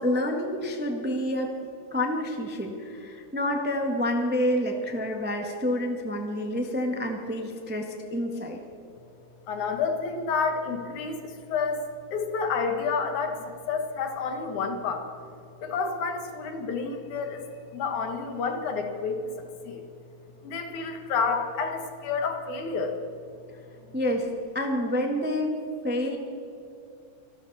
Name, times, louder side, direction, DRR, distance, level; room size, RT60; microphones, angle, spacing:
voice 1, 0.0-1.5 1.9-8.6 23.9-24.3 24.5-25.5 25.8-26.2, left 1 dB, 10° right, 2 dB, 0.6 m, -28 dB
voice 2, 9.5-15.0 15.6-17.5 17.7-19.3 19.6-19.9 20.4-23.0, left 5 dB, 75° left, 4 dB, 2.9 m, -29 dB
25.5 x 13.0 x 4.2 m, 2.7 s
omnidirectional pair, 3.5 m